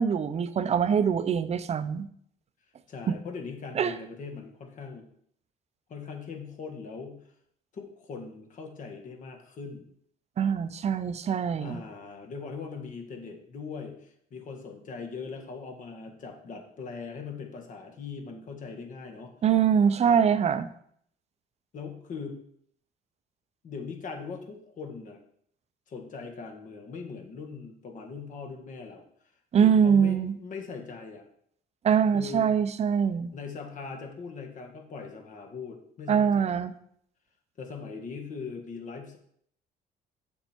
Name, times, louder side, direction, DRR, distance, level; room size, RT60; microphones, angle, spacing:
voice 1, 0.0-2.1 3.8-4.0 10.4-11.8 19.4-20.7 29.5-30.3 31.8-33.3 36.1-36.7, right 7 dB, 40° right, 12 dB, 0.6 m, -23 dB
voice 2, 2.9-5.1 5.9-7.2 7.7-9.9 11.6-19.3 20.0-20.4 21.7-22.4 23.6-25.2 25.9-29.0 29.6-31.2 32.1-32.6 33.3-36.6 37.6-39.2, left 5 dB, 50° left, 3 dB, 1.7 m, -40 dB
7.0 x 6.6 x 4.5 m, 0.66 s
cardioid pair, 110°, 17 cm